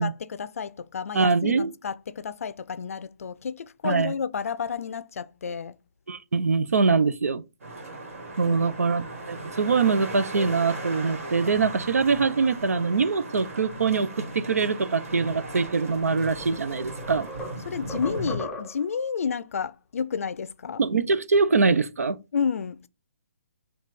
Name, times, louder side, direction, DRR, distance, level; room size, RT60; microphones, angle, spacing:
voice 1, 0.0-5.7 8.5-8.7 17.7-20.8 22.3-22.9, left 6 dB, 70° left, 0.4 m, -31 dB
voice 2, 1.1-1.7 3.8-4.1 6.1-7.4 8.4-17.3 20.8-22.2, right 4 dB, 90° right, 0.5 m, -23 dB
sound 1, 7.6-18.4, right 2 dB, 65° right, 1.7 m, -37 dB
sound 2, 15.8-15.9 16.4-19.0, left 1 dB, 5° left, 0.5 m, -38 dB
4.1 x 2.3 x 4.6 m
hypercardioid pair, 150°, 8 cm